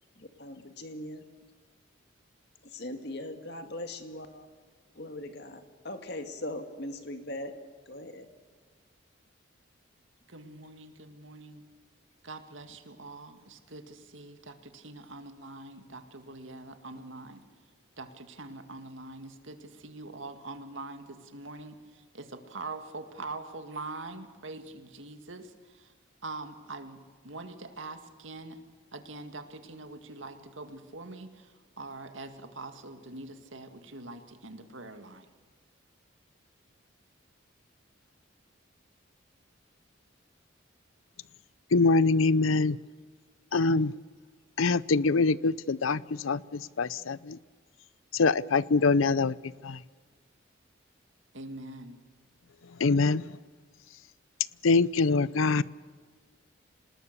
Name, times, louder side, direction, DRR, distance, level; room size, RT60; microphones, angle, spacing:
voice 1, 0.2-1.2 2.7-4.5 5.0-5.6 5.8-7.5 7.9-8.3, left 1 dB, 55° left, 6 dB, 2.1 m, -39 dB
voice 2, 10.3-11.6 12.2-17.4 18.0-25.9 26.2-28.6 28.9-31.5 31.8-35.3 51.3-52.0, right 3 dB, 75° right, 7 dB, 2.1 m, -43 dB
voice 3, 41.7-42.8 43.5-43.9 44.6-47.4 48.1-49.4 49.6-49.8 52.8-53.4 54.6-55.6, left 3 dB, 90° left, 19 dB, 0.6 m, -24 dB
26.5 x 19.5 x 6.8 m, 1.5 s
head